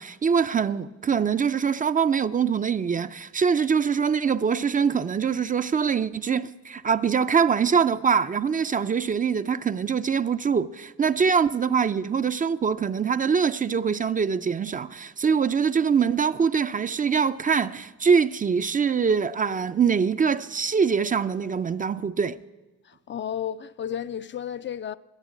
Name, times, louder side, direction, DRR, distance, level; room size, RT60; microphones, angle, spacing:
voice 1, 0.0-22.4, right 6 dB, 30° right, 0.4 m, -23 dB
voice 2, 22.8-25.0, left 9 dB, 40° left, 0.4 m, -32 dB
12.5 x 10.5 x 8.5 m
cardioid pair, 90°, 30 cm